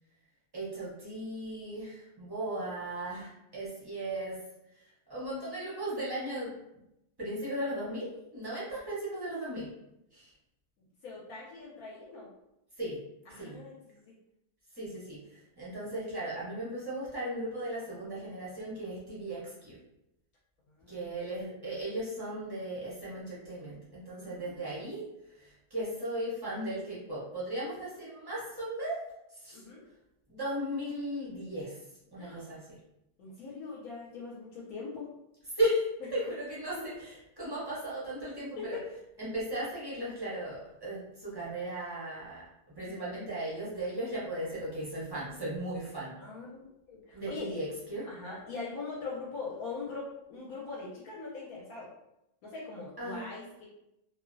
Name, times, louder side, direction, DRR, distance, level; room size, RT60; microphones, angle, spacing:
voice 1, 0.5-4.4 5.1-6.5 7.2-9.7 10.1-10.3 12.8-13.0 13.4-13.6 14.8-19.8 20.9-25.0 25.3-29.0 29.3-29.6 30.3-31.8 32.1-32.8 35.5-38.8 39.2-42.4 42.8-46.2 47.1-48.1 53.0-53.3, right 1 dB, 30° right, -9 dB, 0.4 m, -36 dB
voice 2, 11.0-12.3 13.3-14.2 20.7-21.2 24.1-24.7 29.5-29.8 32.2-32.6 33.2-35.1 38.6-38.8 46.2-47.6 48.1-51.9 52.4-53.7, left 4 dB, 70° left, -5 dB, 1.0 m, -42 dB
2.7 x 2.0 x 2.5 m, 0.86 s
omnidirectional pair, 1.7 m